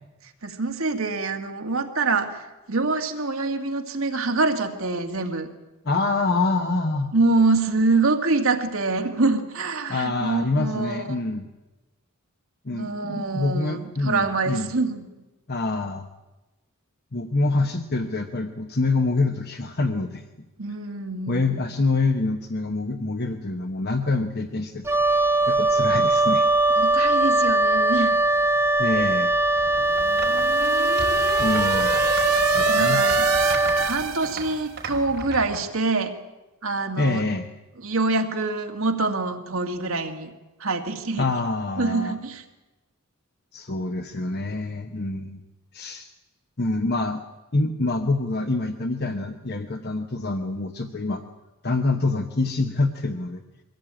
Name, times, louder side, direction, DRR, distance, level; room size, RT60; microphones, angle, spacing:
voice 1, 0.2-5.5 7.1-11.2 12.7-15.1 20.6-21.6 26.8-28.2 32.7-33.3 33.8-36.1 36.6-37.3 37.8-40.3 40.6-41.3 41.8-42.4, right 3 dB, 65° right, 4 dB, 2.0 m, -25 dB
voice 2, 5.8-7.1 9.9-11.5 12.6-14.7 15.5-16.1 17.1-20.2 21.3-25.0 25.5-26.5 28.8-29.3 31.4-32.0 32.5-33.0 37.0-37.5 41.2-42.2 43.5-45.4 45.7-46.1 46.6-47.2 47.5-51.2 51.6-53.4, left 3 dB, 45° left, 6 dB, 1.0 m, -26 dB
Wind instrument woodwind instrument, 24.8-34.0, right 2 dB, 10° right, 0.8 m, -21 dB
sound 1, 29.6-30.5 30.9-35.6, right 3 dB, 45° right, 5.3 m, -36 dB
sound 2, 29.7-34.8, right 5 dB, 85° right, 1.4 m, -29 dB
23.0 x 16.0 x 8.9 m, 1.1 s
head